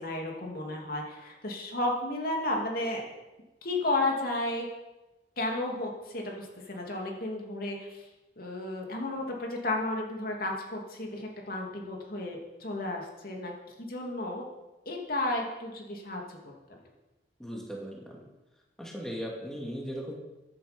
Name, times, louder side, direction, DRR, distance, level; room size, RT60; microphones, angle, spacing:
voice 1, 0.0-3.1 3.6-4.7 5.4-8.0 8.4-13.5 13.8-14.5 14.8-16.4 16.7-16.8, left 2 dB, 55° left, 0 dB, 2.8 m, -33 dB
voice 2, 17.4-18.2 18.8-20.1, equal, 5° left, -2 dB, 2.2 m, -38 dB
15.0 x 10.5 x 5.3 m, 1.0 s
head